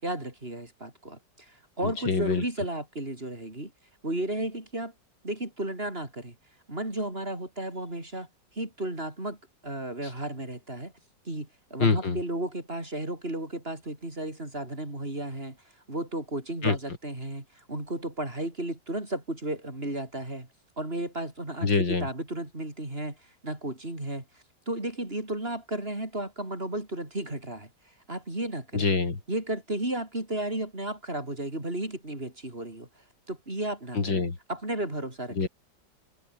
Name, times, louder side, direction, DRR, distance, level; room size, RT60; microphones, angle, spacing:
voice 1, 0.0-3.7 4.0-4.9 5.2-6.4 6.7-8.3 8.6-9.4 9.6-10.9 11.3-15.6 15.9-20.5 20.8-21.7 22.0-23.2 23.4-24.2 24.7-27.7 28.1-28.9 29.3-32.9 33.3-34.2 34.5-35.4, right 1 dB, 30° right, 5.7 m, -33 dB
voice 2, 1.8-2.4 11.8-12.2 16.6-16.8 21.6-22.1 28.7-29.2 33.9-34.4 35.3-35.5, left 4 dB, 80° left, 4.2 m, -25 dB
omnidirectional pair, 2.0 m